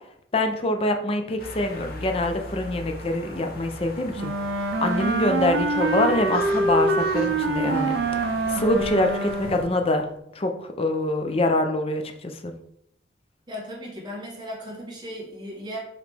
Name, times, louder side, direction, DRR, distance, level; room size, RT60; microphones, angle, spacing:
voice 1, 0.3-4.3 4.8-8.0 8.5-10.1 10.4-12.5, left 2 dB, 35° left, 5 dB, 0.5 m, -25 dB
sound 1, 1.4-9.6, left 2 dB, 55° left, 0.8 m, -38 dB
Wind instrument woodwind instrument, 4.1-9.7, right 3 dB, 75° right, 0.5 m, -25 dB
voice 2, 13.5-15.8, equal, 25° right, -3 dB, 1.2 m, -36 dB
4.9 x 3.2 x 3.3 m, 0.76 s
head